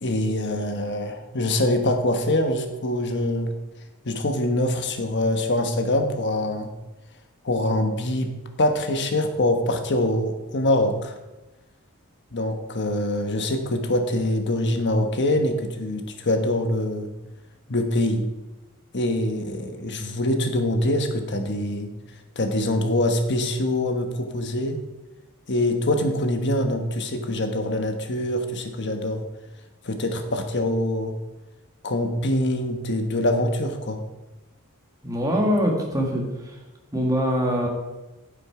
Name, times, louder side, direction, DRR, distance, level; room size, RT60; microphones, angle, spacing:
voice 1, 0.0-3.5 4.0-6.7 7.4-8.3 8.6-11.1 12.3-17.1 17.7-18.2 18.9-21.9 22.3-24.8 25.5-29.2 29.8-31.1 31.8-34.0, left 1 dB, 50° left, 6 dB, 1.2 m, -24 dB
voice 2, 35.0-36.6 36.9-37.7, equal, 15° right, 0 dB, 1.8 m, -23 dB
9.5 x 7.6 x 4.8 m, 1.1 s
head